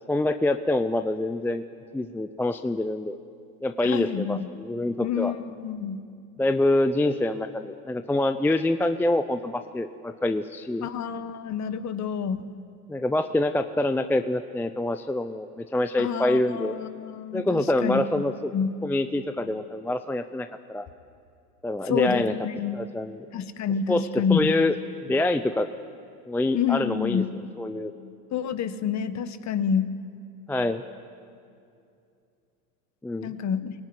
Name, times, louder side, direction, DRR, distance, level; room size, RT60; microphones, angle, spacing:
voice 1, 0.1-1.6 1.9-3.2 3.6-5.3 6.4-10.9 12.9-16.8 17.3-18.5 18.8-20.9 21.6-22.3 22.7-23.2 23.9-24.0 24.3-24.7 25.0-25.7 26.3-27.2 27.6-27.9 30.5-30.8 33.0-33.3, left 1 dB, 5° left, 9 dB, 0.5 m, -26 dB
voice 2, 3.8-4.5 5.0-6.0 10.8-12.5 16.0-18.0 18.5-18.7 21.8-22.8 23.3-24.5 26.5-27.3 28.3-29.9 33.2-33.7, left 7 dB, 35° left, 12 dB, 1.5 m, -28 dB
22.5 x 18.5 x 9.7 m, 2.5 s
supercardioid pair, 105°, 46 cm